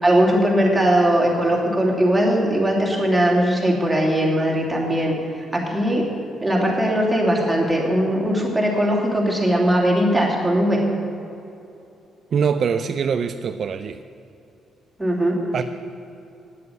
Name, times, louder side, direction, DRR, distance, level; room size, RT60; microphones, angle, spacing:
voice 1, 0.0-6.0 6.4-10.8 15.0-15.4, equal, 5° right, -3 dB, 3.1 m, -19 dB
voice 2, 12.3-14.0 15.5-15.6, right 6 dB, 55° right, 9 dB, 0.5 m, -23 dB
9.4 x 8.3 x 9.4 m, 2.7 s
cardioid pair, 90°, 0 cm